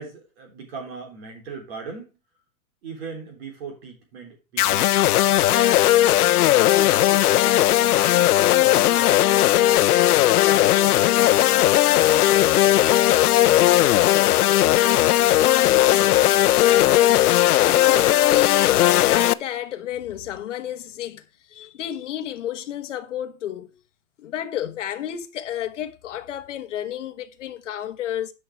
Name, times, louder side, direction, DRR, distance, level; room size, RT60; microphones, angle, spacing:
voice 1, 0.0-2.1 2.8-5.4, right 5 dB, 45° right, 3.5 m, -38 dB
sound 1, 4.6-19.3, left 14 dB, 90° left, 0.7 m, -17 dB
voice 2, 16.6-23.8 24.2-28.3, left 11 dB, 55° left, 1.2 m, -31 dB
11.0 x 5.6 x 4.6 m
supercardioid pair, 180°, 44 cm